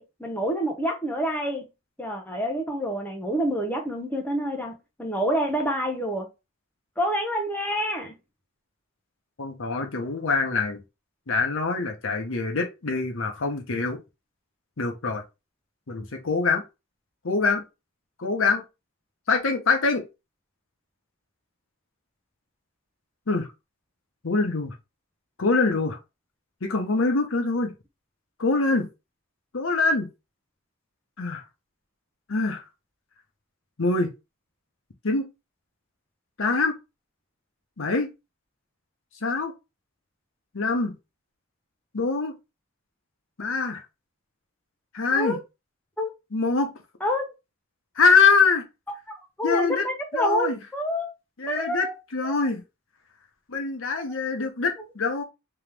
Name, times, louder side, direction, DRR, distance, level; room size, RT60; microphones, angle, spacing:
voice 1, 0.0-1.7 2.0-6.3 7.0-8.1 45.1-45.4 46.0-46.1 47.0-47.3 49.1-51.1 51.5-51.9 52.2-52.3 54.0-54.1, equal, 10° left, 0.8 m, -28 dB
voice 2, 9.4-10.8 11.3-14.0 14.8-15.2 15.9-16.6 17.2-17.6 18.2-18.6 19.3-20.0 23.3-23.4 24.2-24.7 25.4-26.0 26.6-27.7 28.4-28.9 29.5-30.1 31.2-31.4 32.3-32.6 33.8-34.1 35.0-35.3 36.4-36.7 37.8-38.1 39.2-39.5 40.5-40.9 41.9-42.3 43.4-43.8 44.9-45.4 46.3-46.7 48.0-48.6 49.4-49.9 50.1-50.6 51.4-51.9 52.1-52.6 53.5-55.2, left 4 dB, 70° left, 0.9 m, -24 dB
3.5 x 3.0 x 3.3 m
head